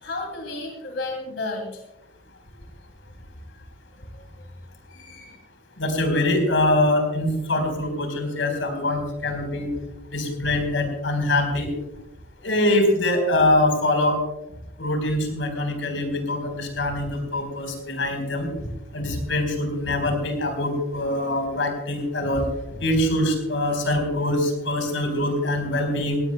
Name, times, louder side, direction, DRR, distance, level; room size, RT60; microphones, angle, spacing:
voice 1, 0.0-1.8 2.5-2.6 4.1-4.3 4.9-5.4, left 2 dB, 70° left, 1 dB, 2.7 m, -33 dB
voice 2, 5.8-9.7 10.1-11.7 12.4-14.2 14.8-18.7 18.9-22.5 22.8-26.2, left 1 dB, 90° left, 4 dB, 4.1 m, -23 dB
18.5 x 17.5 x 2.2 m, 0.99 s
head